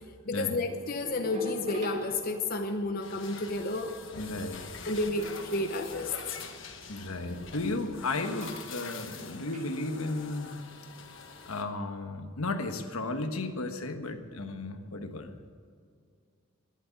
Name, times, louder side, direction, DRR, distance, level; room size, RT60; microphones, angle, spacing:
voice 1, 0.3-3.9 4.8-6.4 7.6-7.7, left 2 dB, 40° left, 5 dB, 0.7 m, -31 dB
sound 1, 0.7-2.8 5.2-6.4 8.4-9.1 9.5-9.7, equal, 35° right, 1.8 m, -43 dB
sound 2, 3.0-11.6, left 4 dB, 60° left, 1.4 m, -44 dB
voice 2, 4.1-4.6 6.9-10.5 11.5-15.5, left 2 dB, 75° left, 6 dB, 1.3 m, -34 dB
12.5 x 11.0 x 8.5 m, 2.2 s
head